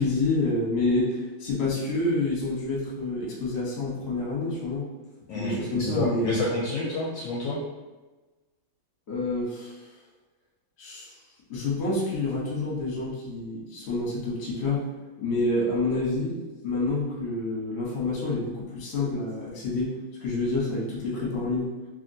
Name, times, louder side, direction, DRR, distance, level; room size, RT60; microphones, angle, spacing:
voice 1, 0.0-4.8 5.3-6.3 9.1-9.8 10.8-11.1 11.5-14.8 15.2-16.4 16.6-19.9 20.2-21.7, left 2 dB, 45° left, -6 dB, 0.9 m, -28 dB
voice 2, 5.3-7.6, left 1 dB, 75° left, -4 dB, 1.1 m, -29 dB
2.8 x 2.8 x 2.7 m, 1.2 s
omnidirectional pair, 2.2 m